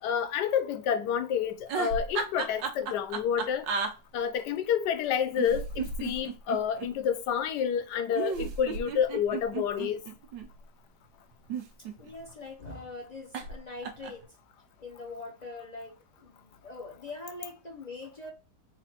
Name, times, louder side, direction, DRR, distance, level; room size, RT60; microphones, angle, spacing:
voice 1, 0.0-3.7 4.1-10.0, left 8 dB, 75° left, 1.2 m, -29 dB
sound 1, 1.6-3.9 5.3-6.9 8.1-10.5 11.3-12.3 13.3-13.6 13.8-14.2, right 5 dB, 90° right, 1.5 m, -33 dB
voice 2, 11.8-14.4 14.8-18.3, left 3 dB, 55° left, 0.4 m, -43 dB
3.4 x 3.4 x 4.2 m
omnidirectional pair, 1.9 m